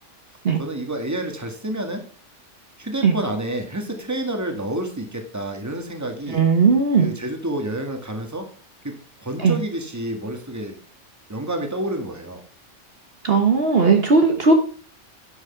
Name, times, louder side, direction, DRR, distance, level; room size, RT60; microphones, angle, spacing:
voice 1, 0.6-2.0 2.8-6.4 7.0-8.5 8.8-10.8 11.3-12.4, right 1 dB, 15° right, 4 dB, 1.8 m, -29 dB
voice 2, 6.3-7.1 9.4-9.6 13.2-14.5, right 4 dB, 55° right, 4 dB, 1.4 m, -17 dB
10.0 x 6.4 x 4.4 m, 0.42 s
omnidirectional pair, 1.3 m